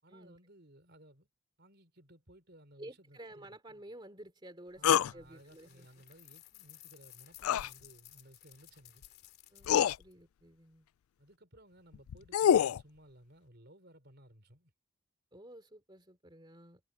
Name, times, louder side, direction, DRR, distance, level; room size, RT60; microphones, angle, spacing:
voice 1, 0.0-1.3 1.6-3.5 4.8-9.0 11.2-14.7, right 1 dB, 50° right, 4.7 m, -59 dB
voice 2, 2.8-6.0 9.5-10.9 15.3-16.8, right 1 dB, 20° right, 3.0 m, -52 dB
sound 1, 4.8-5.1 7.4-7.7 9.0-9.1 9.6-10.0 11.9-12.8, left 9 dB, 75° left, 0.3 m, -26 dB
sound 2, 5.2-10.1, left 13 dB, 45° left, 3.2 m, -57 dB
head